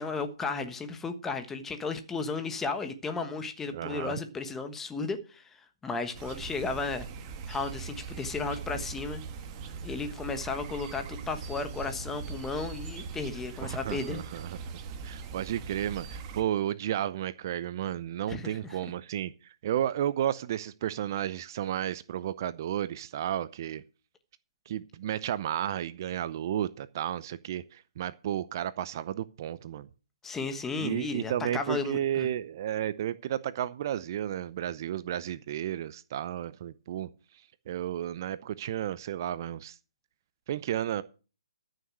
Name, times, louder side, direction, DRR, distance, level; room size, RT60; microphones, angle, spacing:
voice 1, 0.0-5.4 5.8-7.1 7.5-9.2 9.8-14.2 18.3-18.5 30.2-32.3, left 4 dB, 10° left, 1.3 m, -34 dB
voice 2, 3.7-4.1 13.6-23.8 24.7-29.9 30.8-39.8 40.5-41.0, right 11 dB, 40° right, 0.6 m, -33 dB
sound 1, 6.1-16.4, right 5 dB, 25° right, 1.7 m, -41 dB
14.0 x 6.6 x 6.1 m
hypercardioid pair, 140°, 3 cm